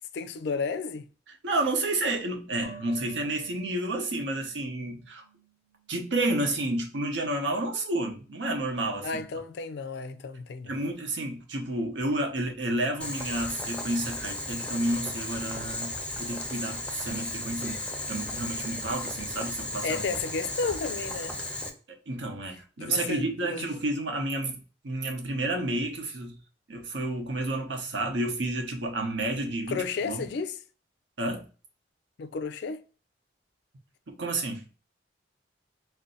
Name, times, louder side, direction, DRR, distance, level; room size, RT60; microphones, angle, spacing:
voice 1, 0.1-1.1 9.0-10.8 19.8-21.4 22.8-23.6 29.7-30.6 32.2-32.8, left 4 dB, 65° left, 0.3 m, -32 dB
voice 2, 1.4-5.2 5.9-9.2 10.7-17.8 18.1-20.0 22.1-24.6 24.8-26.4 26.7-30.3 31.2-31.5 34.2-34.6, right 2 dB, 80° right, 0.8 m, -30 dB
sound 1, 2.6-5.9 6.2-6.3, right 4 dB, 25° right, 0.7 m, -50 dB
Boiling, 13.0-21.7, left 2 dB, 5° left, 0.5 m, -35 dB
2.6 x 2.2 x 3.8 m
head